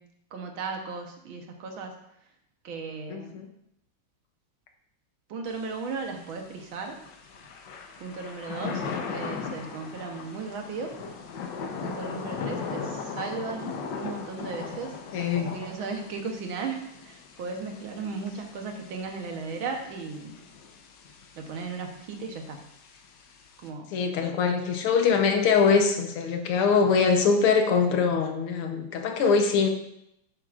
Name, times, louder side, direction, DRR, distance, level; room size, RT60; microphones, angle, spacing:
voice 1, 0.3-2.0 2.6-3.4 5.3-7.0 8.0-11.0 11.8-15.0 15.5-20.3 21.4-22.6 23.6-23.9, right 4 dB, 70° right, 3 dB, 1.8 m, -36 dB
voice 2, 3.1-3.5 8.5-8.9 15.1-15.5 23.9-29.7, left 5 dB, 85° left, 5 dB, 1.9 m, -23 dB
Thunder / Rain, 5.5-23.7, left 5 dB, 65° left, 1.5 m, -39 dB
10.5 x 7.9 x 2.5 m, 0.79 s
omnidirectional pair, 2.3 m